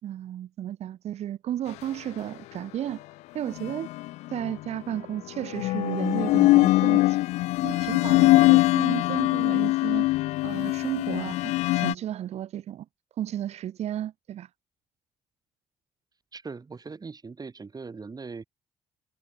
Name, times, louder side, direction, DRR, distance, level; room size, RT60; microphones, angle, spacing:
voice 1, 0.0-3.0 3.3-3.9 4.3-7.2 7.6-10.1 10.4-12.9 13.2-14.5, right 11 dB, 65° right, 4.3 m, -33 dB
sound 1, 3.6-4.5 5.4-11.9, left 19 dB, 75° left, 0.8 m, -22 dB
voice 2, 16.3-18.4, right 4 dB, 35° right, 5.3 m, -40 dB
hypercardioid pair, 60°, 12 cm